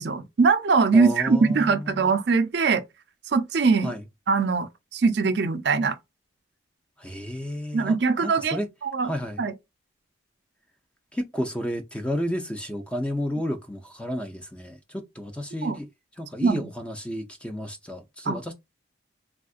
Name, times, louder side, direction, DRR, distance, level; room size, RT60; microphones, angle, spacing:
voice 1, 0.0-2.8 3.3-3.9 4.3-6.0 7.7-9.1 9.4-9.5 15.6-15.8 16.4-16.6 18.3-18.4, right 4 dB, 55° right, 0.4 m, -22 dB
voice 2, 0.9-2.2 3.8-4.0 7.0-7.9 8.2-8.7 9.0-9.4 11.1-15.9 16.2-18.5, equal, 5° left, 0.5 m, -32 dB
3.4 x 2.4 x 2.4 m
head